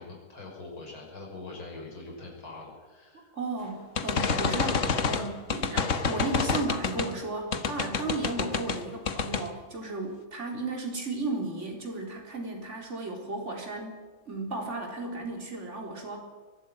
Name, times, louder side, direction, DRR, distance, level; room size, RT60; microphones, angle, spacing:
voice 1, 0.0-3.2 4.6-4.8, left 3 dB, 75° left, -1 dB, 6.7 m, -43 dB
voice 2, 3.1-4.8 5.1-16.2, right 2 dB, 35° right, 1 dB, 4.3 m, -34 dB
sound 1, 4.0-7.1 7.5-8.8 9.1-9.5, left 5 dB, 45° left, 1.4 m, -28 dB
23.0 x 12.0 x 9.4 m, 1.4 s
omnidirectional pair, 2.2 m